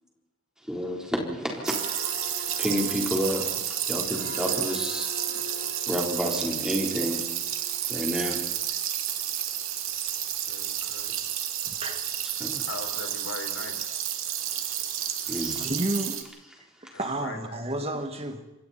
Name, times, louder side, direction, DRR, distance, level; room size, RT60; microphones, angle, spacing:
voice 1, 0.7-1.9 2.6-5.5 5.9-7.2 7.6-8.4 12.4-12.7 15.3-15.7, equal, 5° right, -1 dB, 4.1 m, -30 dB
sound 1, 1.4-8.9 9.3-9.5, left 1 dB, 50° left, 2.1 m, -43 dB
sound 2, 1.7-16.2, right 10 dB, 80° right, 2.4 m, -31 dB
voice 2, 10.2-11.2 12.7-13.8 16.9-17.4, left 3 dB, 80° left, 3 dB, 4.8 m, -39 dB
voice 3, 11.7-12.0 15.6-16.2 16.8-18.4, right 1 dB, 30° right, 4 dB, 2.4 m, -31 dB
27.5 x 23.5 x 4.4 m, 0.96 s
head